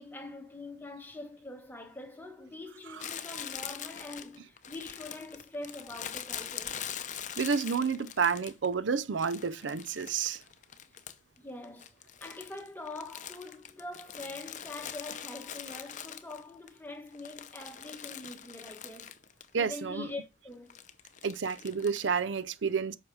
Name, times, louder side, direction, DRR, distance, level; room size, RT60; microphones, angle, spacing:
voice 1, 0.0-6.8 10.9-11.0 11.4-19.2 19.5-20.8, left 2 dB, 10° left, 1.4 m, -44 dB
Crumpling crinkling, 3.0-8.7 9.2-11.4 11.6-16.7 17.1-19.5 19.7-19.8 20.7-22.1, left 9 dB, 40° left, 0.6 m, -43 dB
voice 2, 7.4-10.4 19.5-20.1 21.2-23.0, right 6 dB, 75° right, 0.5 m, -30 dB
7.8 x 5.7 x 4.7 m
head